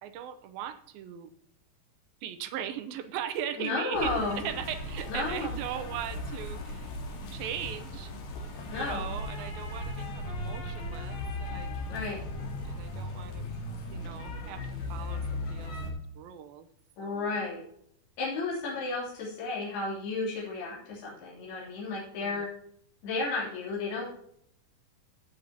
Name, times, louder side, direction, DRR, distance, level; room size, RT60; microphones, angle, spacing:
voice 1, 0.0-1.3 2.2-6.9 7.3-8.1 8.7-11.7 12.0-12.2 12.7-13.5 13.9-16.7 17.0-17.4 22.2-22.5, right 10 dB, 75° right, 10 dB, 2.3 m, -39 dB
voice 2, 3.6-4.4 5.1-5.5 8.7-9.1 11.9-12.2 17.0-17.6 18.2-22.5 23.0-24.1, left 3 dB, 75° left, -5 dB, 5.0 m, -33 dB
sound 1, 3.9-15.9, left 1 dB, 55° left, 2.6 m, -37 dB
16.0 x 6.3 x 2.8 m, 0.68 s
omnidirectional pair, 4.6 m